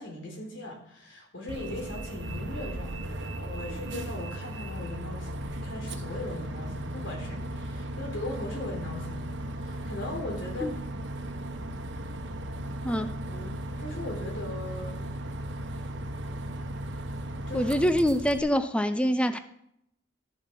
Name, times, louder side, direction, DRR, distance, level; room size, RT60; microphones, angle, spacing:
voice 1, 0.0-9.3 9.5-10.7 12.9-15.1 17.5-18.0, left 1 dB, 85° left, -1 dB, 3.8 m, -39 dB
Bus, 1.5-18.4, right 1 dB, 70° right, 1.1 m, -36 dB
voice 2, 17.5-19.4, equal, 5° left, 10 dB, 0.4 m, -25 dB
12.5 x 7.0 x 5.8 m, 0.76 s
head